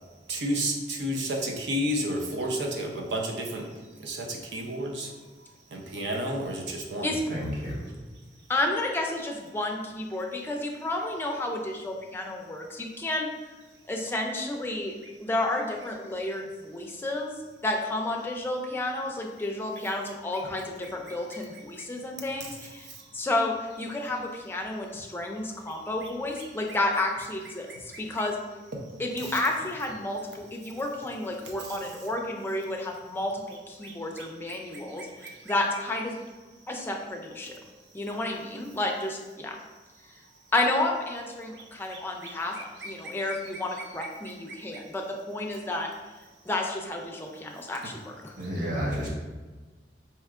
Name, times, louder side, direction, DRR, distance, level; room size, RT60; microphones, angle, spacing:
voice 1, 0.3-7.1 15.0-15.1 20.0-21.9 22.4-23.3 25.7-26.8 27.4-28.3 28.7-28.8 29.2-29.4 31.4-32.0 33.5-35.5 36.7-36.9 41.5-43.9 44.2-44.8, equal, 80° right, 0 dB, 0.6 m, -35 dB
voice 2, 7.3-7.8 48.4-49.1, equal, 50° right, -5 dB, 0.9 m, -30 dB
voice 3, 8.5-13.3 13.9-14.9 15.2-17.3 17.6-22.7 23.1-27.6 28.0-28.4 29.0-33.3 33.7-35.1 35.5-36.1 36.7-37.5 37.9-39.6 40.5-42.5 42.8-45.9 46.5-48.3, left 2 dB, 15° left, 1 dB, 0.4 m, -31 dB
4.4 x 2.8 x 2.4 m, 1.3 s
head